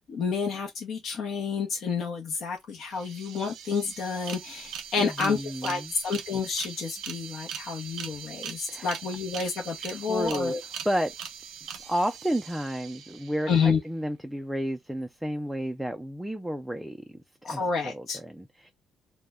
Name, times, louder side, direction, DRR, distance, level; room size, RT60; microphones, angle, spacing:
voice 1, 0.1-10.6 13.5-13.8 17.4-18.2, left 5 dB, 65° left, 0.7 m, -29 dB
sound 1, 2.6-2.7 2.8-13.7, right 8 dB, 85° right, 0.5 m, -41 dB
voice 2, 5.0-5.9 8.7-8.9 9.8-10.5 10.8-11.1 11.8-13.5 13.8-17.0 17.5-18.7, equal, 5° right, 0.3 m, -31 dB
2.1 x 2.1 x 3.4 m
cardioid pair, 90°, 0 cm